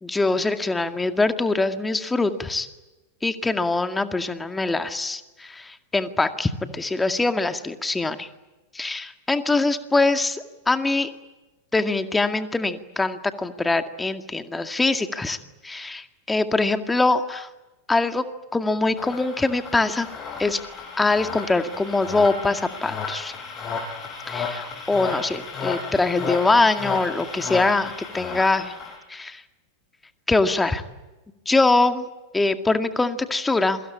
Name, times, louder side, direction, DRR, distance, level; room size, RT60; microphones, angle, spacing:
voice 1, 0.0-2.7 3.2-8.3 8.7-11.1 11.7-15.4 15.6-17.5 17.9-18.2 18.5-20.1 20.4-20.6 21.0-23.3 24.3-28.7 29.1-29.4 30.3-30.8 31.5-32.1 32.3-33.8, left 3 dB, 10° left, 8 dB, 2.1 m, -23 dB
sound 1, 19.0-29.0, left 5 dB, 25° left, 7.0 m, -33 dB
28.0 x 24.0 x 8.7 m, 1.1 s
figure-of-eight pair, 90°, 0 cm